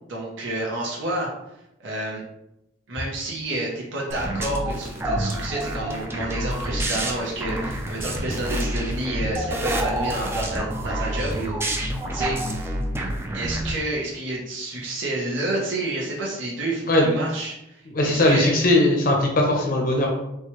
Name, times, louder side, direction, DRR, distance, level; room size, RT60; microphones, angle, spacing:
voice 1, 0.1-1.3 1.8-2.2 2.9-12.4 13.3-18.5, right 1 dB, 85° right, -3 dB, 0.8 m, -29 dB
sound 1, 4.1-13.7, right 1 dB, 15° right, 0.4 m, -28 dB
voice 2, 17.9-20.2, left 1 dB, 50° left, 0 dB, 0.6 m, -19 dB
4.3 x 2.2 x 3.0 m, 0.86 s
head